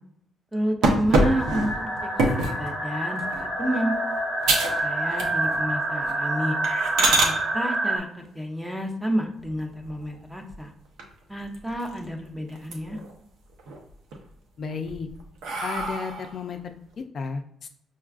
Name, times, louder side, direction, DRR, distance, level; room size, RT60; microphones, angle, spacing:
voice 1, 0.5-2.1 2.4-3.9 4.8-6.6 7.0-10.7 11.3-13.0, equal, 5° right, 3 dB, 0.7 m, -30 dB
sound 1, 0.8-2.6 3.2-3.5 3.9-4.0 4.4-4.8 5.1-5.6 6.0-6.1 6.6-7.3 9.3-10.0 10.5-10.6 11.0-11.1 11.4-12.2 12.5-13.1 13.5-14.2 14.7-16.4, right 2 dB, 85° right, 0.6 m, -25 dB
sound 2, 1.2-8.0, right 1 dB, 60° right, 0.9 m, -27 dB
voice 2, 14.6-15.1 15.6-17.7, left 5 dB, 55° left, 6 dB, 0.4 m, -33 dB
5.7 x 2.3 x 2.4 m, 0.71 s
cardioid pair, 90°, 0 cm